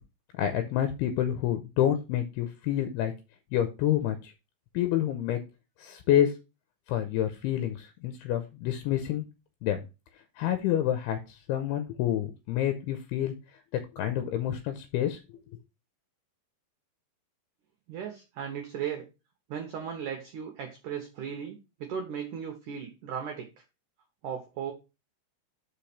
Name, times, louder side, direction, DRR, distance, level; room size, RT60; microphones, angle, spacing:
voice 1, 0.4-3.1 3.5-4.3 4.7-5.4 5.8-6.3 6.9-9.2 9.6-9.8 10.4-13.3 13.9-15.4, left 11 dB, 80° left, 8 dB, 2.4 m, -28 dB
voice 2, 17.9-19.1 19.5-23.5 24.2-24.7, right 8 dB, 85° right, 4 dB, 1.8 m, -36 dB
5.7 x 5.2 x 5.7 m, 0.28 s
omnidirectional pair, 5.2 m